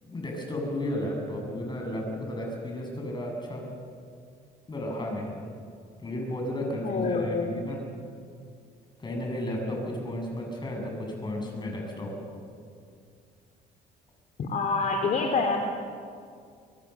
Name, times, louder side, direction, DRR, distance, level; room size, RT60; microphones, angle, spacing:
voice 1, 0.0-3.7 4.7-5.4 6.0-7.8 9.0-12.4, left 1 dB, 25° left, 1 dB, 7.6 m, -33 dB
voice 2, 6.8-7.5 14.4-15.6, left 4 dB, 50° left, 3 dB, 2.6 m, -26 dB
24.5 x 23.0 x 7.1 m, 2.3 s
cardioid pair, 110°, 17 cm